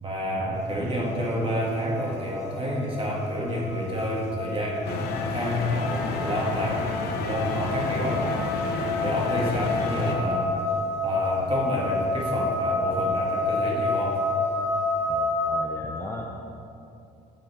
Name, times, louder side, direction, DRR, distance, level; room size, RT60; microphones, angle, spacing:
voice 1, 0.0-6.9 7.2-8.3 9.0-10.5 11.0-14.2, equal, 30° right, -2 dB, 1.4 m, -29 dB
sound 1, 0.5-15.5, left 3 dB, 40° left, 1.1 m, -30 dB
sound 2, 4.8-10.1, left 4 dB, 75° left, 0.7 m, -31 dB
voice 2, 15.1-16.3, left 2 dB, 15° left, -1 dB, 0.4 m, -37 dB
8.7 x 3.8 x 4.1 m, 2.7 s
cardioid pair, 110°, 17 cm